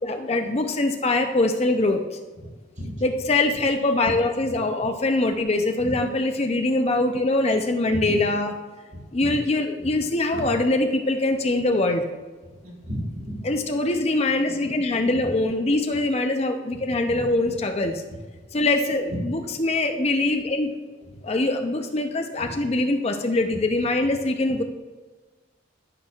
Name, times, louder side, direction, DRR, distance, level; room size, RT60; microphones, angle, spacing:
voice 1, 0.0-2.0 3.0-8.5 9.1-12.1 13.4-18.0 18.5-20.7 21.2-24.6, left 2 dB, 30° left, 5 dB, 0.5 m, -23 dB
voice 2, 8.9-9.3 10.3-10.4 12.6-13.4 17.1-17.2 19.1-19.2 22.4-22.5, equal, 40° right, 0 dB, 1.6 m, -33 dB
13.5 x 6.0 x 2.4 m, 1.3 s
head